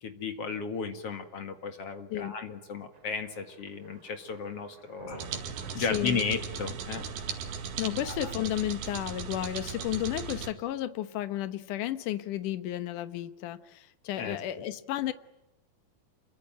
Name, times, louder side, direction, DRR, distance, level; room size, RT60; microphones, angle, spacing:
voice 1, 0.0-5.3 5.7-7.0 7.8-8.3 14.2-14.6, left 5 dB, 45° left, 7 dB, 2.4 m, -35 dB
Thunder, 2.9-9.3, right 4 dB, 40° right, 2.8 m, -51 dB
sound 1, 5.2-10.5, right 6 dB, 90° right, 4.0 m, -37 dB
voice 2, 5.8-6.2 7.8-15.1, left 13 dB, 65° left, 12 dB, 2.4 m, -33 dB
27.5 x 23.0 x 9.2 m, 0.94 s
omnidirectional pair, 4.3 m